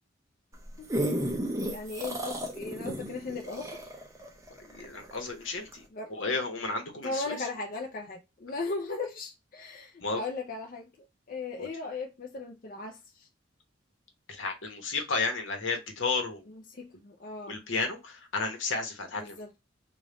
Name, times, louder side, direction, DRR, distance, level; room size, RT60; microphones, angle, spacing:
sound 1, 0.5-5.2 5.7-5.8, equal, 15° right, 0.6 m, -33 dB
voice 1, 1.7-3.9 5.9-6.2 7.0-13.3 16.5-17.5 19.2-19.5, left 3 dB, 45° left, 0.5 m, -37 dB
voice 2, 4.7-5.8 6.1-7.4 10.0-10.2 11.6-11.7 14.3-16.5 17.5-19.4, left 4 dB, 80° left, 1.1 m, -32 dB
3.4 x 2.5 x 3.8 m
head